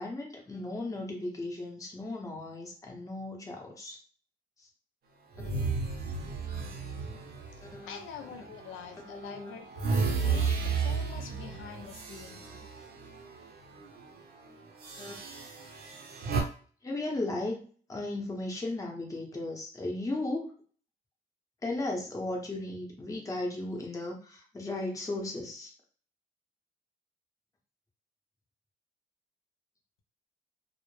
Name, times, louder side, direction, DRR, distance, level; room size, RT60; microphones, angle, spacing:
voice 1, 0.0-4.0 7.7-8.0 9.1-9.5 12.5-12.6 15.0-15.1 16.8-17.6 17.9-20.6 21.6-25.7, left 2 dB, 15° left, 0 dB, 0.7 m, -36 dB
sound 1, 5.3-8.7 9.1-13.5 13.8-14.0 14.8-16.4, right 5 dB, 55° right, 0.6 m, -33 dB
voice 2, 7.5-9.9 10.2-12.4, left 7 dB, 80° left, 6 dB, 0.5 m, -46 dB
2.0 x 2.0 x 3.0 m, 0.43 s
cardioid pair, 90°, 20 cm